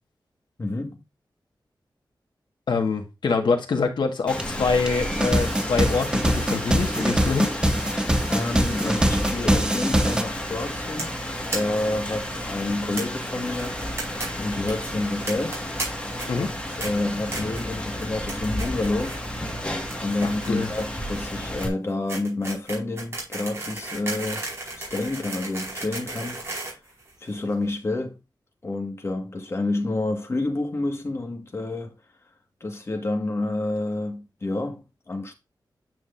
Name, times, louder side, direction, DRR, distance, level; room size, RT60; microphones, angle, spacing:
voice 1, 0.6-1.0 8.3-11.2 11.5-14.0 14.4-15.6 16.4-16.5 16.8-19.2 20.0-24.5 24.8-26.7 27.2-28.2 28.6-31.9 32.6-35.3, left 2 dB, 35° left, 1.7 m, -29 dB
voice 2, 2.7-7.5 16.3-16.5 20.2-20.7, left 4 dB, 75° left, 1.6 m, -25 dB
Rain, 4.3-21.7, left 1 dB, 15° left, 1.7 m, -32 dB
sound 1, 4.4-4.5 4.9-10.2, right 1 dB, 10° right, 0.6 m, -23 dB
sound 2, 11.0-11.2 11.5-11.6 11.8-11.9 12.2-12.3 13.0-13.1 13.6-14.3 14.5-14.7 15.3-15.8 16.2-16.5 16.8-16.9 17.3-17.6 18.0-18.3 18.6-19.2 19.5-27.5, right 2 dB, 35° right, 4.8 m, -34 dB
9.2 x 6.2 x 2.6 m
wide cardioid pair, 160°, 8 cm